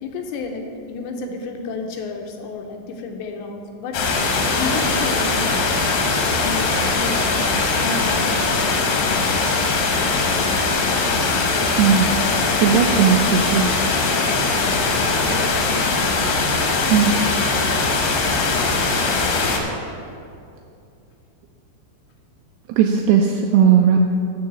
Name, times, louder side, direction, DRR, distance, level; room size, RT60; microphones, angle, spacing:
voice 1, 0.0-4.0 4.3-5.9 6.2-7.5 7.8-8.5 9.7-10.7 13.9-14.6 14.9-16.3 16.8-17.0, left 3 dB, 80° left, 3 dB, 2.8 m, -32 dB
sound 1, 3.9-19.6, left 3 dB, 65° left, 2.4 m, -20 dB
voice 2, 11.8-12.2 12.6-13.8 16.9-17.2 22.7-24.0, right 7 dB, 85° right, 3 dB, 2.5 m, -17 dB
14.0 x 4.7 x 7.2 m, 2.5 s
omnidirectional pair, 5.4 m